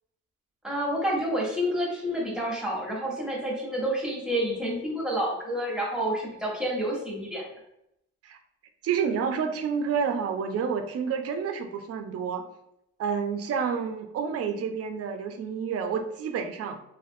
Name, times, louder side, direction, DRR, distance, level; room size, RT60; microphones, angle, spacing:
voice 1, 0.6-7.4, equal, 5° right, -3 dB, 0.9 m, -29 dB
voice 2, 8.8-12.5 13.0-16.8, right 6 dB, 55° right, 7 dB, 0.4 m, -29 dB
2.5 x 2.4 x 2.6 m, 0.80 s
cardioid pair, 90°, 30 cm